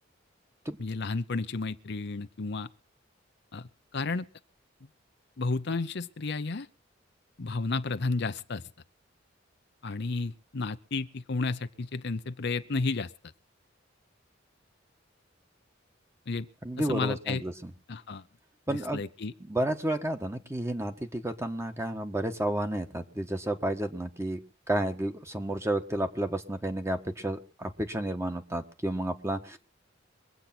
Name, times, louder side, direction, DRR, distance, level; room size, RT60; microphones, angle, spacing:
voice 1, 0.8-2.7 3.5-3.7 3.9-4.3 5.4-6.7 7.4-8.6 9.8-13.1 16.3-16.5 16.8-17.4 17.9-18.2 18.7-19.3, left 3 dB, 60° left, 11 dB, 0.7 m, -32 dB
voice 2, 16.6-17.7 18.7-19.0 19.4-24.4 24.7-29.6, right 1 dB, 15° right, 6 dB, 1.4 m, -31 dB
23.0 x 8.3 x 6.0 m, 0.37 s
head